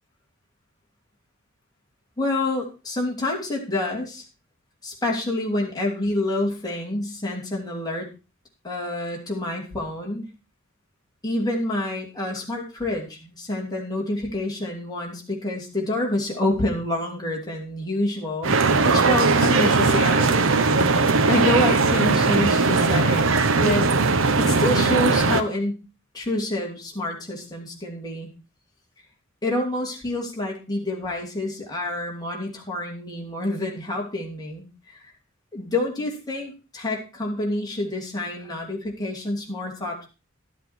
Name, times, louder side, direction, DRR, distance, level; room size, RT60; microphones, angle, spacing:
voice 1, 2.2-4.2 4.8-8.1 8.6-10.3 11.2-18.6 18.8-20.5 21.0-23.9 24.4-25.8 26.1-28.3 29.4-35.0 35.5-40.1, left 1 dB, 20° left, -2 dB, 3.0 m, -27 dB
sound 1, 18.4-25.4, right 3 dB, 70° right, 0.9 m, -19 dB
12.0 x 8.1 x 4.3 m, 0.30 s
head